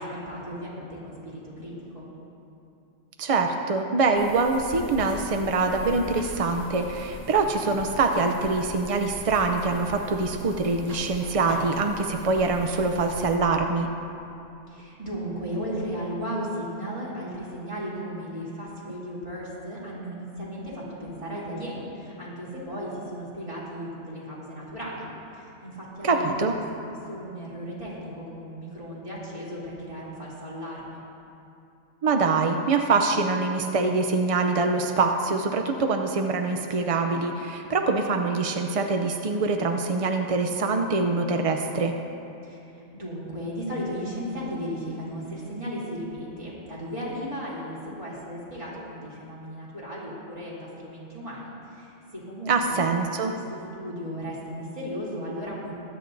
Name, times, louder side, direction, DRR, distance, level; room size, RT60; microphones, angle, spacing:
voice 1, 0.0-2.0 14.7-25.1 25.3-31.0 42.4-52.8 53.3-55.7, equal, 25° right, -8 dB, 2.9 m, -35 dB
voice 2, 3.2-13.9 26.0-26.5 32.0-41.9 52.5-53.3, right 3 dB, 55° right, 5 dB, 0.3 m, -24 dB
sound 1, 4.1-13.4, equal, 75° right, 1.7 m, -41 dB
23.0 x 8.9 x 2.6 m, 2.8 s
omnidirectional pair, 1.3 m